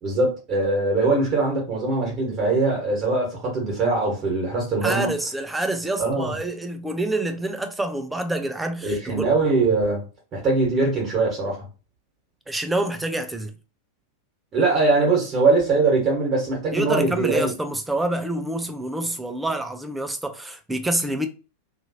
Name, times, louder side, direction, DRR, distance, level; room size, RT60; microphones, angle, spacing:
voice 1, 0.0-5.1 6.0-6.3 8.8-10.0 10.3-11.6 14.5-17.5, right 3 dB, 30° right, 1.4 m, -22 dB
voice 2, 4.8-9.3 12.5-13.5 16.7-21.3, right 1 dB, 5° right, 0.5 m, -27 dB
2.8 x 2.4 x 2.8 m
figure-of-eight pair, 90°, 0 cm